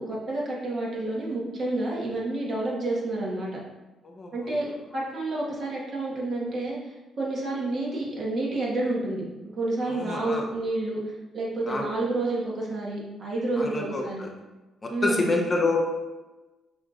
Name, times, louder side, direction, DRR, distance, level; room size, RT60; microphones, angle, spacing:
voice 1, 0.0-3.6 4.3-4.7 4.9-11.0 11.3-14.2 14.9-15.4, right 2 dB, 50° right, -4 dB, 1.4 m, -29 dB
voice 2, 4.0-4.6 9.9-10.4 11.6-11.9 13.5-14.3 14.8-15.8, left 3 dB, 25° left, 1 dB, 0.6 m, -28 dB
6.0 x 3.1 x 2.4 m, 1.1 s
cardioid pair, 90°, 0 cm